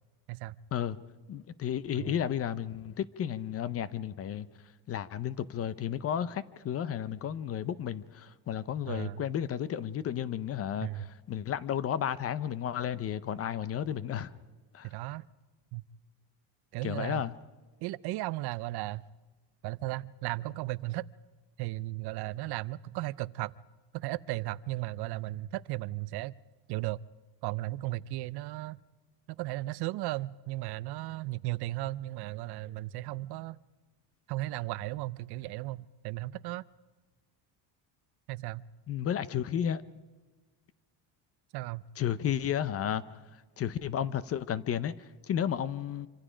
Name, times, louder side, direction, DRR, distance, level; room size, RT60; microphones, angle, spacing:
voice 1, 1.3-4.5 4.9-14.3 14.7-14.9 16.8-17.3 38.9-39.8 42.0-46.1, left 9 dB, 30° left, 0.6 m, -33 dB
voice 2, 8.9-9.2 10.8-11.1 14.8-15.2 15.7-15.8 16.7-17.2 17.8-19.0 19.6-21.1 21.6-23.5 23.9-26.3 26.7-27.0 27.4-28.8 29.3-33.6 34.3-36.6 38.3-38.6 41.5-41.8, right 18 dB, 60° right, 0.6 m, -35 dB
26.0 x 26.0 x 5.1 m
cardioid pair, 170°, 45 cm